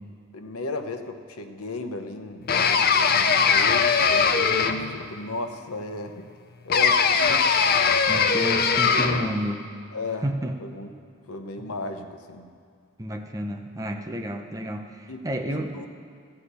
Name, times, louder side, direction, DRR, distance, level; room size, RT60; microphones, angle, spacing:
voice 1, 0.3-6.1 6.6-7.5 8.2-8.4 9.0-9.2 9.9-10.3 10.6-10.9 11.3-12.5 15.1-15.9, left 2 dB, 90° left, 7 dB, 1.0 m, -35 dB
sound 1, 2.5-5.0 6.7-9.3, left 5 dB, 45° left, 0.5 m, -20 dB
voice 2, 8.0-9.6 10.2-10.6 11.6-11.7 13.0-15.9, right 1 dB, 15° right, 4 dB, 0.7 m, -30 dB
14.5 x 5.8 x 8.2 m, 2.3 s
head